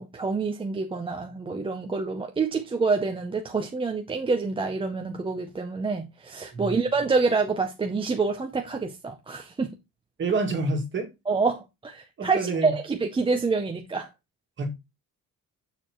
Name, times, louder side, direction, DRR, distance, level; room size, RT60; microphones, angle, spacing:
voice 1, 0.0-9.7 11.3-14.1, right 4 dB, 15° right, 0.5 m, -27 dB
voice 2, 10.2-11.1 12.2-12.7 14.6-14.7, right 3 dB, 35° right, 2.0 m, -27 dB
6.8 x 6.6 x 3.0 m
cardioid pair, 180°, 35 cm